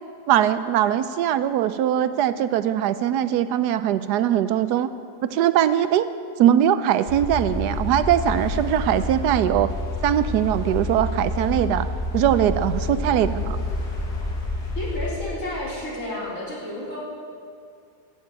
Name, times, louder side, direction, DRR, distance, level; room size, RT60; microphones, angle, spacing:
voice 1, 0.3-4.9 5.2-6.1 6.4-9.7 10.0-11.9 12.1-13.6, right 10 dB, 85° right, 13 dB, 1.2 m, -21 dB
sound 1, 7.1-15.1, left 1 dB, 75° left, 2.7 m, -28 dB
voice 2, 14.8-17.0, left 1 dB, 50° left, -7 dB, 4.4 m, -31 dB
14.5 x 7.7 x 9.3 m, 2.4 s
omnidirectional pair, 1.7 m